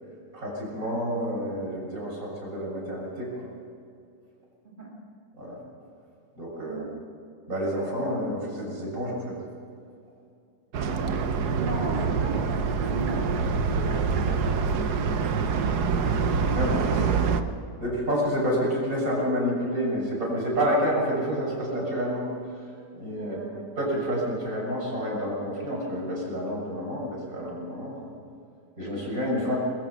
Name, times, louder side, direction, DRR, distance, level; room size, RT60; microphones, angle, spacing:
voice 1, 0.3-3.4 5.4-5.6 6.4-6.8 7.5-9.4 16.5-17.0 17.8-22.3 22.9-23.4 23.8-28.1 28.8-29.6, equal, 50° right, -4 dB, 7.5 m, -29 dB
sound 1, 10.7-17.4, right 5 dB, 65° right, 1.5 m, -25 dB
voice 2, 11.6-13.4 13.7-15.1 17.0-17.2 23.2-23.7 29.5-29.6, right 2 dB, 30° right, -3 dB, 2.6 m, -37 dB
21.0 x 21.0 x 5.8 m, 2.5 s
omnidirectional pair, 1.9 m